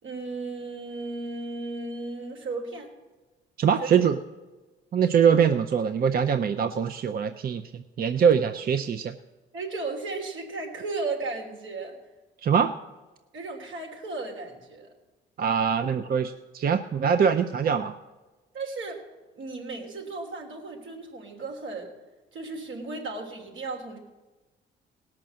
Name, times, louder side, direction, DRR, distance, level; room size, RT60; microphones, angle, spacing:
voice 1, 0.0-2.9 3.8-4.0 9.5-12.0 13.3-14.9 18.5-19.0 19.4-21.9 22.3-24.0, right 3 dB, 80° right, 1 dB, 3.1 m, -35 dB
voice 2, 3.6-4.2 4.9-9.1 12.4-12.7 15.4-18.0, right 7 dB, 50° right, 8 dB, 0.6 m, -23 dB
18.0 x 6.0 x 7.5 m, 1.2 s
cardioid pair, 90°, 20 cm